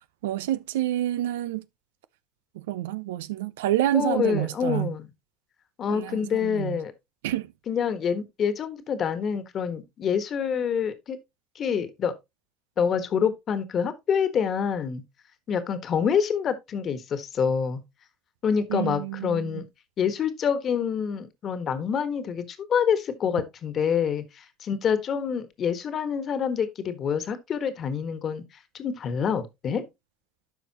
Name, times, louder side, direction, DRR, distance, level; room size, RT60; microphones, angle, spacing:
voice 1, 0.2-1.6 2.5-4.9 5.9-6.8 7.2-7.5 18.7-19.6, right 14 dB, 85° right, 0.6 m, -28 dB
voice 2, 3.9-5.1 5.8-6.9 7.7-11.2 11.5-12.1 12.8-15.0 15.5-17.8 18.4-19.6 20.0-28.4 28.7-29.8, left 7 dB, 45° left, 1.5 m, -27 dB
12.5 x 4.9 x 2.9 m
hypercardioid pair, 85°, 0 cm